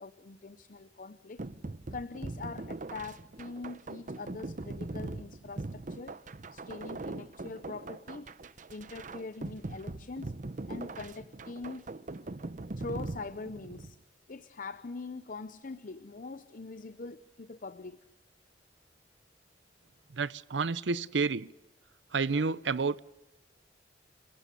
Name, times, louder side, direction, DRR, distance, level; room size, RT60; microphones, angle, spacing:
voice 1, 0.0-1.4 1.9-6.2 6.5-8.3 8.7-10.3 10.7-11.8 12.8-14.0 14.3-18.0, left 3 dB, 50° left, 13 dB, 0.7 m, -43 dB
sound 1, 1.4-13.9, right 2 dB, 45° right, 0.7 m, -41 dB
voice 2, 20.1-21.5 22.1-23.0, right 4 dB, 80° right, 18 dB, 0.6 m, -30 dB
29.0 x 16.5 x 6.8 m, 1.1 s
head